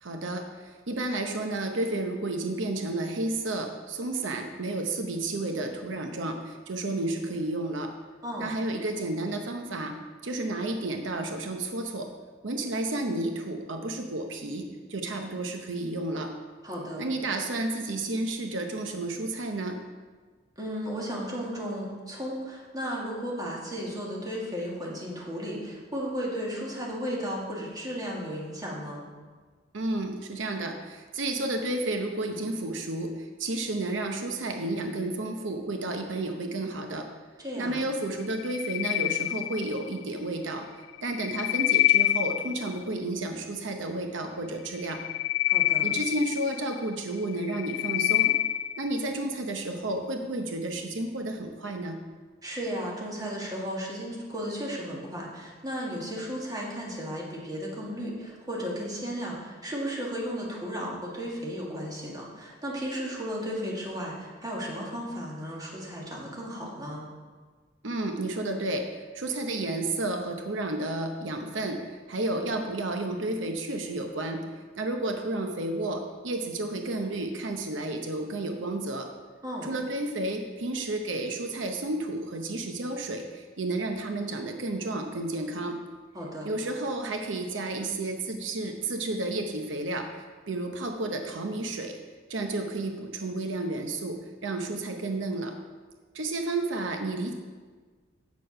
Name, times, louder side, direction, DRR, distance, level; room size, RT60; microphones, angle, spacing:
voice 1, 0.0-7.9 8.4-9.9 10.2-12.1 12.4-16.3 17.0-19.8 29.7-37.1 37.6-45.0 45.8-48.3 48.8-52.0 67.8-74.4 74.8-79.1 79.6-85.8 86.4-90.1 90.5-92.0 92.3-95.5 96.1-97.3, right 2 dB, 90° right, 4 dB, 0.8 m, -31 dB
voice 2, 8.2-8.5 16.6-17.1 20.6-29.0 37.4-37.8 45.5-45.9 52.4-67.1 79.4-79.7 86.1-86.5, equal, 20° right, -4 dB, 2.0 m, -34 dB
sound 1, 38.3-40.0 40.9-42.8 44.7-46.8 47.3-48.9, left 16 dB, 80° left, 0.4 m, -26 dB
8.3 x 6.8 x 5.4 m, 1.4 s
head